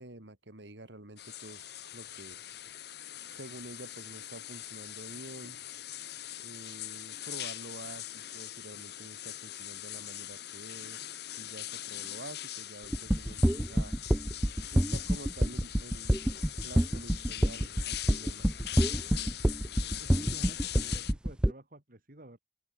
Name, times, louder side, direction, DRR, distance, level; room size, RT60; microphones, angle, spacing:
voice 1, 0.0-2.4 3.3-5.6 6.4-11.0 11.4-14.0 14.7-16.2 16.6-18.5, right 1 dB, 80° right, 3.8 m, -48 dB
sound 1, 1.2-21.1, left 13 dB, 65° left, 1.5 m, -42 dB
sound 2, 12.9-21.5, equal, 5° right, 0.5 m, -26 dB
voice 2, 19.8-22.4, right 1 dB, 55° right, 3.1 m, -51 dB
open air
head